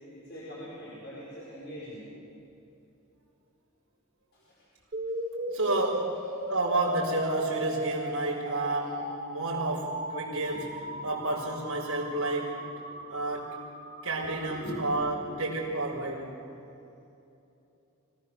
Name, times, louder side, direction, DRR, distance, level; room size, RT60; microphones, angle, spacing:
voice 1, 0.1-2.1 4.3-4.6 5.5-5.6 6.4-6.5 9.7-9.8 10.5-10.9 12.9-13.0 14.2-14.9 15.1-15.4, equal, 50° left, -8 dB, 5.0 m, -43 dB
sound 1, 4.9-14.9, right 2 dB, 45° right, 2.5 m, -37 dB
voice 2, 5.5-6.2 6.5-10.7 11.0-12.6 13.1-13.6 14.0-16.3, right 2 dB, 85° right, -6 dB, 4.9 m, -30 dB
26.0 x 17.5 x 7.0 m, 2.8 s
head